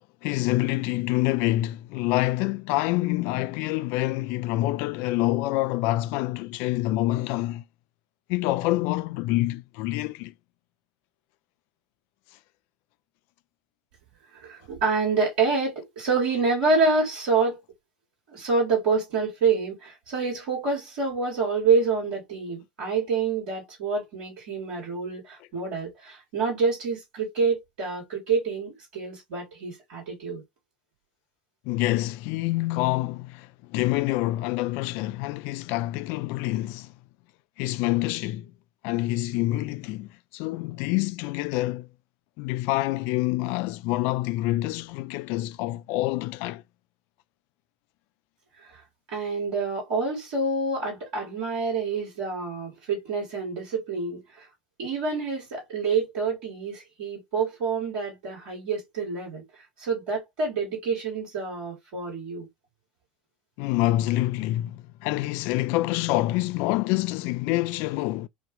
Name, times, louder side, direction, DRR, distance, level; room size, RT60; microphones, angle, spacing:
voice 1, 0.2-7.6 8.3-10.3 31.6-36.9 37.6-38.5 38.8-41.9 42.4-46.6 63.6-68.3, left 17 dB, 55° left, 0.3 m, -26 dB
voice 2, 14.3-17.6 18.3-30.4 48.6-48.8 49.1-54.5 54.8-62.5, right 4 dB, 65° right, 2.6 m, -27 dB
5.1 x 2.4 x 3.1 m
figure-of-eight pair, 70°, 4 cm